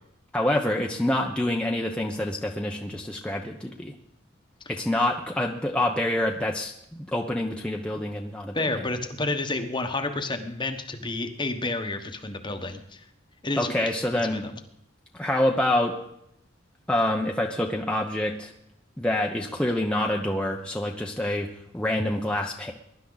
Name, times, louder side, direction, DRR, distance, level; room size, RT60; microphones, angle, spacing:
voice 1, 0.3-3.9 4.7-8.8 13.6-14.5 15.1-16.0 16.9-18.5 19.0-22.7, left 1 dB, 5° left, 0 dB, 0.9 m, -27 dB
voice 2, 8.5-13.0 13.4-13.9 14.3-14.5, left 2 dB, 25° left, 7 dB, 1.2 m, -30 dB
22.0 x 11.5 x 4.0 m, 0.76 s
head